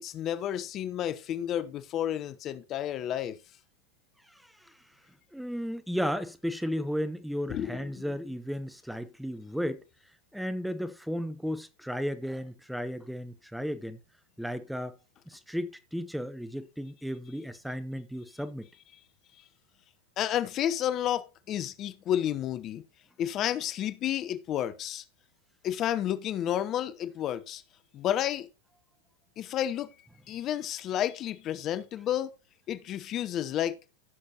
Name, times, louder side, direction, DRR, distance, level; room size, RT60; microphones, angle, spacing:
voice 1, 0.0-3.4 7.5-7.8 20.2-22.8 23.2-25.0 25.6-27.6 27.9-28.5 29.4-29.9 30.3-32.3 32.7-33.8, left 11 dB, 35° left, 0.8 m, -31 dB
voice 2, 4.2-4.8 5.3-9.8 10.3-14.0 14.4-15.0 15.3-18.7, equal, ahead, 0.9 m, -34 dB
15.5 x 6.5 x 2.9 m
figure-of-eight pair, 90°, 0 cm